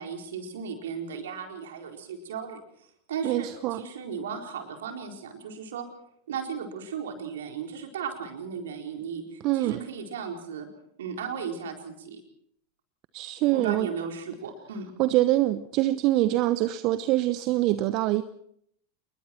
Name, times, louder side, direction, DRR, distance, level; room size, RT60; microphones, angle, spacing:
voice 1, 0.0-2.6 3.1-5.8 6.3-10.7 11.0-12.2 13.5-14.9, right 6 dB, 65° right, 4.3 m, -36 dB
voice 2, 3.2-3.8 9.4-9.9 13.1-13.9 15.0-18.2, right 16 dB, 45° right, 0.9 m, -24 dB
28.5 x 21.5 x 4.5 m
figure-of-eight pair, 90°, 0 cm